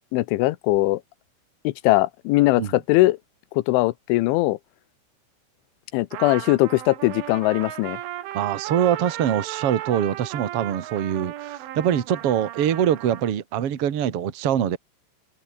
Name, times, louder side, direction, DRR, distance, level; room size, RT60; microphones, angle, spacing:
voice 1, 0.1-1.0 1.6-3.2 3.5-4.6 5.9-8.0, left 19 dB, 80° left, 3.2 m, -20 dB
Trumpet, 6.1-13.3, right 13 dB, 80° right, 4.2 m, -35 dB
voice 2, 8.3-14.8, right 9 dB, 55° right, 1.6 m, -24 dB
omnidirectional pair, 5.6 m